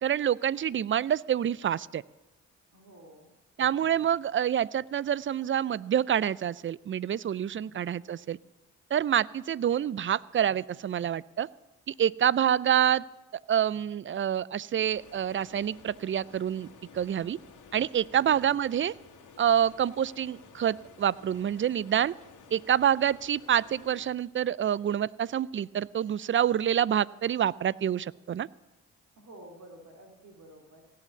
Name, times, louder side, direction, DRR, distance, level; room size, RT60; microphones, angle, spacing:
voice 1, 0.0-2.0 3.6-8.4 8.9-11.5 11.9-13.0 13.5-16.7 16.9-17.4 17.7-18.9 19.4-22.1 22.5-28.5, right 9 dB, 35° right, 22 dB, 0.5 m, -27 dB
voice 2, 2.7-3.3 7.4-7.8 18.1-18.4 29.2-30.9, right 1 dB, 55° right, 1 dB, 3.1 m, -51 dB
sound 1, 14.9-24.1, left 5 dB, 60° left, 2.0 m, -53 dB
16.5 x 8.5 x 8.2 m, 1.0 s
hypercardioid pair, 45°, 34 cm